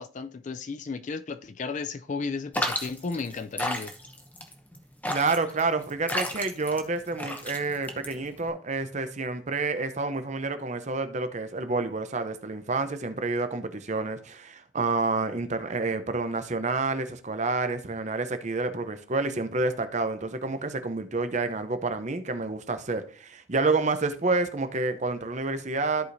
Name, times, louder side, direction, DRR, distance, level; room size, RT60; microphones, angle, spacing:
voice 1, 0.0-3.9, left 4 dB, 35° left, 0.3 m, -34 dB
sound 1, 2.5-8.5, left 1 dB, 10° left, 0.8 m, -33 dB
voice 2, 5.1-26.1, right 3 dB, 35° right, 0.7 m, -29 dB
14.0 x 4.9 x 2.6 m
head